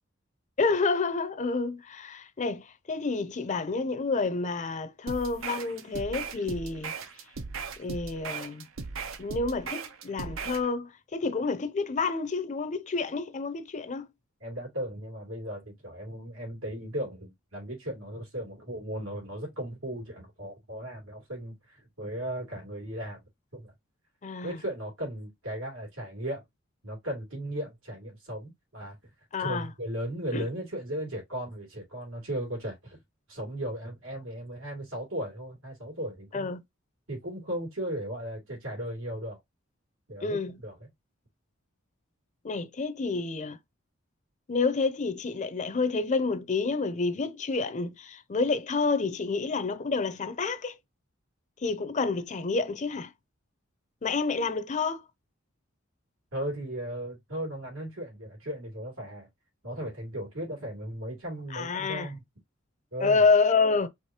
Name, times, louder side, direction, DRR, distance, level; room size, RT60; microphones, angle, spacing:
voice 1, 0.6-6.9 7.8-8.7 9.2-14.1 24.2-24.6 29.3-29.7 30.3-30.5 36.3-36.6 40.2-40.6 42.4-43.6 44.5-50.8 51.6-53.1 54.0-55.0 61.5-62.1 63.0-63.9, left 4 dB, 35° left, 0.6 m, -28 dB
sound 1, 5.1-10.7, right 5 dB, 70° right, 0.7 m, -38 dB
voice 2, 14.4-23.2 23.5-23.7 24.4-26.4 26.8-29.0 29.4-33.0 33.3-36.5 37.1-39.4 40.1-40.9 56.3-59.3 59.6-62.2 62.9-63.2, right 1 dB, 90° right, 3.0 m, -36 dB
4.9 x 3.0 x 2.8 m
head